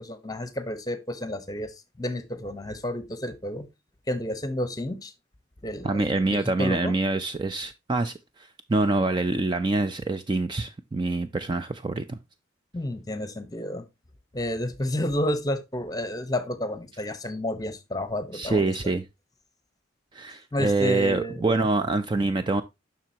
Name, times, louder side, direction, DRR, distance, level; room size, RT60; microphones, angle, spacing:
voice 1, 0.0-3.7 4.1-5.1 5.6-6.9 12.7-13.9 14.3-18.7 20.5-21.4, left 1 dB, 20° left, 0.8 m, -31 dB
voice 2, 5.8-12.2 18.3-19.0 20.1-22.6, right 2 dB, 25° right, 0.3 m, -25 dB
7.4 x 5.9 x 2.7 m
head